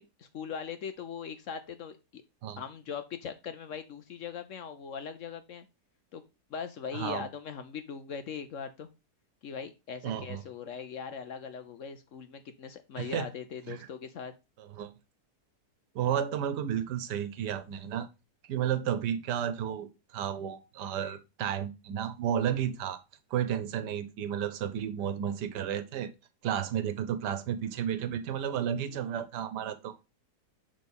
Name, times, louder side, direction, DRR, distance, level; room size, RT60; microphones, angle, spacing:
voice 1, 0.0-2.2 2.6-5.7 6.1-6.2 6.5-8.9 9.4-14.3, left 7 dB, 60° left, 0.9 m, -40 dB
voice 2, 6.9-7.3 10.0-10.4 13.0-13.3 13.7-13.9 14.6-14.9 15.9-18.1 18.4-23.0 23.3-26.1 26.4-30.0, right 9 dB, 90° right, 1.4 m, -32 dB
6.2 x 3.8 x 5.2 m
omnidirectional pair, 1.7 m